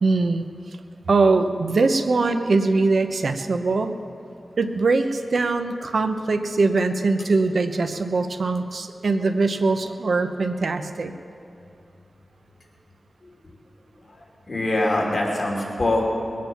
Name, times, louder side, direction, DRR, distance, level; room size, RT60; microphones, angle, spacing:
voice 1, 0.0-0.5 1.1-4.0 4.6-11.1, right 3 dB, 70° right, 8 dB, 0.9 m, -22 dB
voice 2, 14.2-16.0, left 1 dB, 50° left, -1 dB, 2.9 m, -24 dB
21.0 x 9.5 x 5.8 m, 2.8 s
wide cardioid pair, 65°, 0 cm